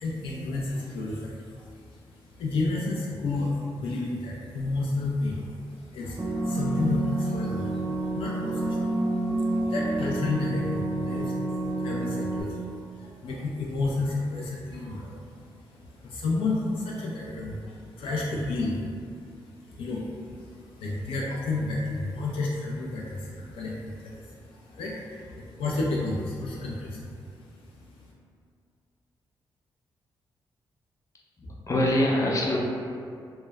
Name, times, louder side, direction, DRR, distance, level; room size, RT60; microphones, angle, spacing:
voice 1, 0.0-27.1 27.4-28.1, left 2 dB, 80° left, -3 dB, 0.4 m, -32 dB
sound 1, 6.2-12.4, right 2 dB, 25° right, 0.5 m, -29 dB
voice 2, 31.4-32.6, left 1 dB, 35° left, -3 dB, 0.6 m, -24 dB
2.2 x 2.0 x 3.3 m, 2.3 s
cardioid pair, 65°, 9 cm